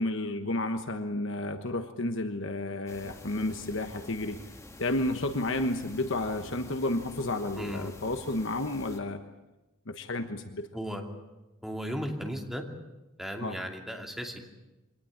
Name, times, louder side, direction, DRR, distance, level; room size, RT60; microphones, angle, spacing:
voice 1, 0.0-4.4 4.8-9.2 9.9-10.7 13.4-13.6, left 2 dB, 65° left, 7 dB, 1.3 m, -31 dB
sound 1, 2.9-9.0, left 1 dB, 15° left, 1.8 m, -48 dB
voice 2, 7.6-7.9 10.7-11.0 11.6-12.6 13.2-14.5, equal, ahead, 2 dB, 2.6 m, -36 dB
24.0 x 19.0 x 8.8 m, 1.0 s
head